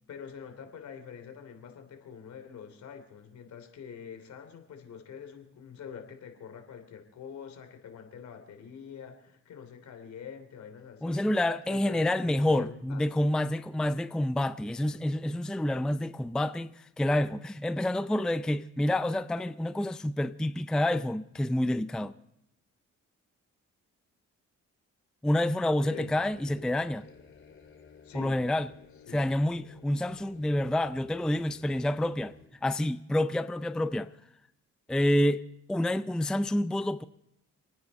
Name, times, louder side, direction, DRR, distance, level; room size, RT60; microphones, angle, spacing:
voice 1, 0.1-13.3 25.9-26.1 28.0-28.4 29.1-29.3, left 7 dB, 70° left, 3.1 m, -45 dB
voice 2, 11.0-22.1 25.2-27.0 28.1-28.7 29.1-32.3 32.6-34.1 34.9-35.4 35.7-37.0, left 1 dB, 5° left, 0.4 m, -28 dB
sound 1, 26.0-32.5, left 6 dB, 40° left, 2.7 m, -55 dB
28.0 x 9.6 x 4.2 m
cardioid pair, 90°, 30 cm